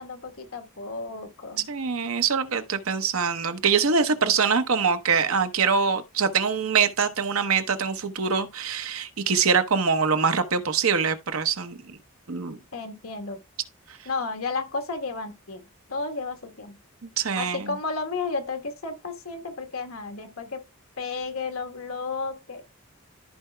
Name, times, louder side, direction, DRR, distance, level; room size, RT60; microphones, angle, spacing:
voice 1, 0.0-1.6 12.7-13.4 14.0-15.6 15.9-16.8 17.4-20.6 21.0-22.6, left 4 dB, 80° left, 1.4 m, -32 dB
voice 2, 1.6-12.0 12.3-12.6 17.0-17.7, right 5 dB, 85° right, 1.0 m, -24 dB
14.0 x 4.8 x 2.3 m
head